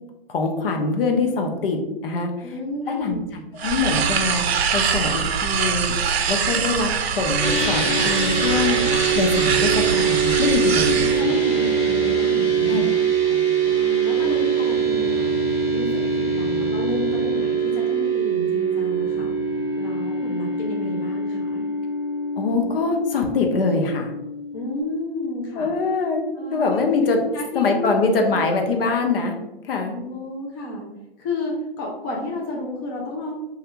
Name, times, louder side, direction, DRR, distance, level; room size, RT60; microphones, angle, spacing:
voice 1, 0.3-2.6 2.9-4.4 4.7-5.9 6.3-8.8 9.1-11.4 12.7-12.8 13.3-13.4 22.4-24.1 25.6-26.2 26.5-27.2 27.5-29.4 29.6-29.9, left 4 dB, 65° left, 3 dB, 0.7 m, -23 dB
voice 2, 2.4-3.2 10.9-12.9 13.6-15.3 15.7-19.3 19.8-21.7 24.5-25.7 26.4-26.7 27.3-27.9 28.3-28.4 29.9-30.9 31.2-33.4, left 1 dB, 20° left, -2 dB, 0.4 m, -31 dB
sound 1, 3.6-11.2, right 7 dB, 80° right, 0.5 m, -24 dB
sound 2, 7.4-24.8, right 5 dB, 10° right, 0.9 m, -23 dB
3.2 x 2.4 x 2.9 m, 0.98 s
hypercardioid pair, 145°, 31 cm